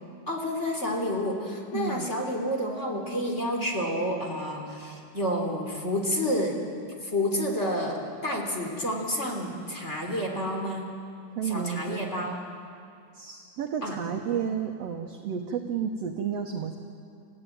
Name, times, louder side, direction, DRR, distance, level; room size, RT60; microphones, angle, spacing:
voice 1, 0.3-6.6 7.0-10.8 11.4-12.4 13.8-14.0, left 1 dB, 20° left, 1 dB, 3.3 m, -29 dB
voice 2, 1.7-2.1 11.3-12.3 13.1-16.8, right 8 dB, 60° right, 3 dB, 1.9 m, -31 dB
29.5 x 15.5 x 9.2 m, 2.4 s
omnidirectional pair, 3.8 m